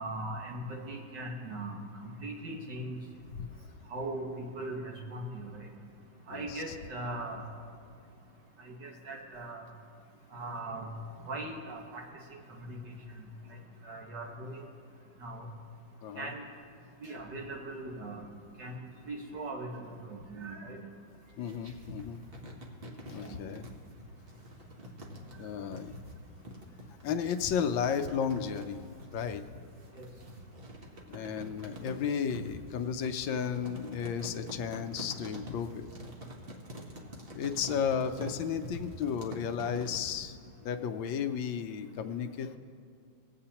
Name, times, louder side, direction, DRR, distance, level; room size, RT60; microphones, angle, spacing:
voice 1, 0.0-3.0 3.9-5.7 6.3-7.4 8.6-9.6 10.3-10.9 11.2-12.0 12.6-12.8 13.2-13.3 13.8-14.6 15.2-15.4 16.2-16.4 17.0-18.3 18.6-18.8 19.1-20.8 23.2-23.4 30.0-30.1, right 2 dB, 60° right, 0 dB, 1.9 m, -39 dB
voice 2, 6.3-6.7 16.0-16.3 21.4-22.2 23.1-23.7 25.4-25.9 27.0-29.4 31.1-35.8 37.3-40.4 40.6-42.6, left 7 dB, 80° left, 7 dB, 1.3 m, -33 dB
sound 1, 21.1-40.2, equal, 35° right, 1.0 m, -46 dB
20.5 x 8.1 x 2.9 m, 2.3 s
omnidirectional pair, 2.1 m